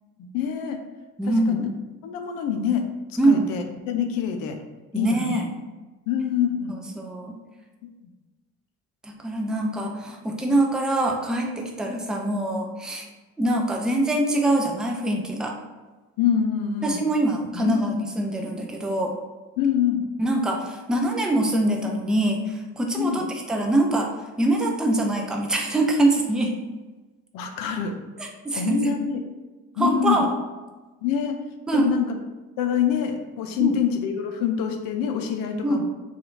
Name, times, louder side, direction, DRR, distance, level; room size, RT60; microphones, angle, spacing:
voice 1, 0.2-0.8 1.5-1.7 2.0-2.8 3.1-4.6 4.9-5.4 6.1-6.8 7.8-8.1 16.2-17.0 17.5-17.8 19.6-20.0 23.0-23.2 27.3-27.9 28.6-29.2 29.8-30.2 31.0-31.4 31.7-32.2 32.6-35.8, left 8 dB, 55° left, 5 dB, 0.5 m, -25 dB
voice 2, 1.2-1.6 3.2-3.5 4.9-5.5 6.7-7.3 9.0-13.1 13.4-15.6 16.8-19.1 20.2-26.6 28.2-28.9 29.8-30.3 31.7-31.9 33.6-33.8 35.6-35.8, right 1 dB, ahead, 1 dB, 0.3 m, -24 dB
2.8 x 2.4 x 3.9 m, 1.2 s
figure-of-eight pair, 45°, 42 cm